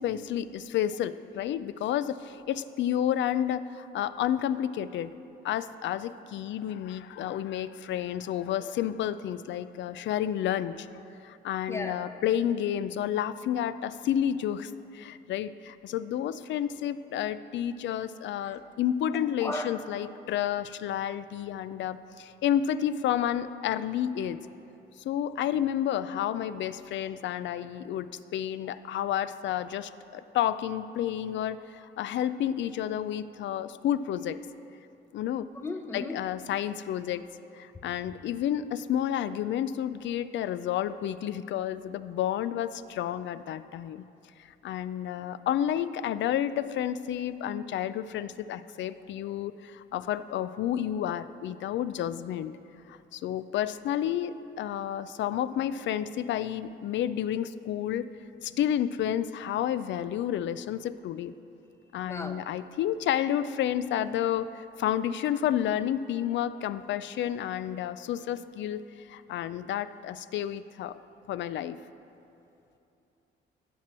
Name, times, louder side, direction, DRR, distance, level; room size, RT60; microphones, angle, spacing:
voice 1, 0.0-5.2 5.4-10.9 11.2-24.4 25.0-34.4 35.1-35.5 35.9-37.3 37.5-44.0 44.6-52.5 52.9-58.1 58.4-61.3 61.9-71.0 71.3-71.8, left 10 dB, 70° left, 14 dB, 0.4 m, -30 dB
voice 2, 35.6-36.2 62.1-62.4, left 2 dB, 15° left, 6 dB, 0.8 m, -34 dB
16.0 x 6.1 x 4.4 m, 2.8 s
cardioid pair, 90°, 20 cm